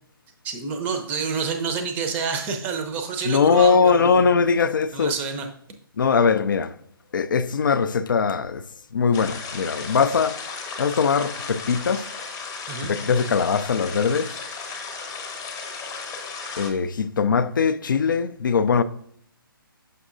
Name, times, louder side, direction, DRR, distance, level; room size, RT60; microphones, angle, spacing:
voice 1, 0.4-4.3 4.9-5.5 12.7-12.9, right 5 dB, 15° right, 0.6 m, -28 dB
voice 2, 3.3-5.1 6.0-6.7 7.1-8.6 8.9-10.4 10.8-12.1 12.9-14.3 16.6-18.8, left 5 dB, 60° left, 0.4 m, -21 dB
sound 1, 9.1-16.7, left 4 dB, 20° left, 0.9 m, -35 dB
6.5 x 5.9 x 2.5 m
figure-of-eight pair, 140°, 12 cm